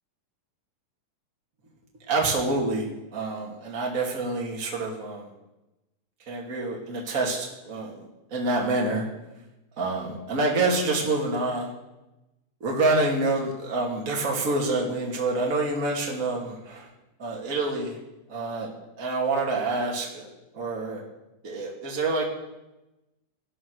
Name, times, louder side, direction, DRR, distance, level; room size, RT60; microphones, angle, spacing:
voice 1, 2.1-2.9 3.1-5.3 6.3-7.9 8.3-9.0 9.8-11.7 12.6-16.9 17.2-18.0 18.3-18.7 19.0-20.3 20.5-21.0 21.4-22.3, right 2 dB, 25° right, -2 dB, 2.7 m, -27 dB
18.0 x 9.8 x 6.4 m, 0.98 s
omnidirectional pair, 3.6 m